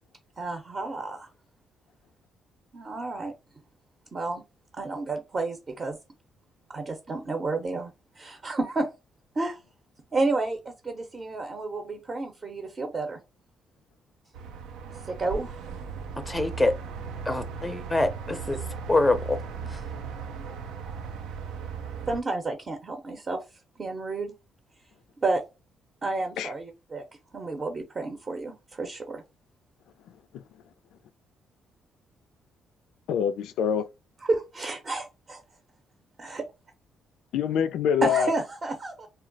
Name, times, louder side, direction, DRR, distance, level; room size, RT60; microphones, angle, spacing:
voice 1, 0.4-1.3 2.7-3.3 4.1-4.4 4.8-6.0 6.7-8.9 9.4-9.6 10.1-13.2 15.1-15.6 20.8-21.1 22.1-23.4 23.8-24.3 25.2-25.4 26.0-27.0 27.3-29.2 34.3-35.4 36.2-36.4 38.0-39.1, right 3 dB, 35° right, 0.7 m, -30 dB
sound 1, 14.3-22.2, right 5 dB, 90° right, 0.4 m, -37 dB
voice 2, 16.3-16.7 17.3-18.6 18.9-19.4, left 2 dB, 10° left, 0.5 m, -24 dB
voice 3, 33.1-33.9 37.3-38.3, left 8 dB, 85° left, 0.3 m, -25 dB
2.2 x 2.0 x 3.8 m
cardioid pair, 90°, 0 cm